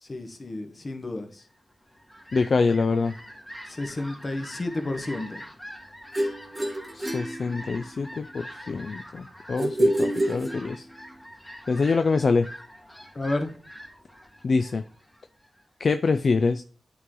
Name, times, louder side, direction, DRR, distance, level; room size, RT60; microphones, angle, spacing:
voice 1, 0.0-1.4 3.7-5.5 13.1-13.5, left 2 dB, 40° left, 1.0 m, -31 dB
Fowl, 1.7-15.6, equal, 10° left, 1.4 m, -44 dB
voice 2, 2.3-3.1 6.9-10.8 11.7-12.5 14.4-14.8 15.8-16.6, left 4 dB, 60° left, 0.3 m, -25 dB
sound 1, 6.1-8.1 9.6-11.1, right 1 dB, 25° right, 1.3 m, -27 dB
8.3 x 3.2 x 3.7 m
cardioid pair, 55°, 0 cm